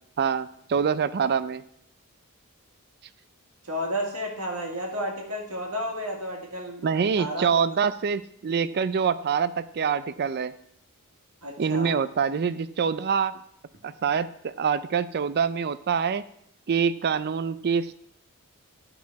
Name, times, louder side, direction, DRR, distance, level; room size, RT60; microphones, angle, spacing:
voice 1, 0.2-1.6 6.8-10.5 11.6-13.4 13.8-16.2 16.7-17.9, right 6 dB, 45° right, 15 dB, 0.4 m, -25 dB
voice 2, 3.6-7.7 11.4-12.0, equal, 75° right, 0 dB, 2.0 m, -32 dB
11.5 x 5.0 x 4.6 m, 0.69 s
head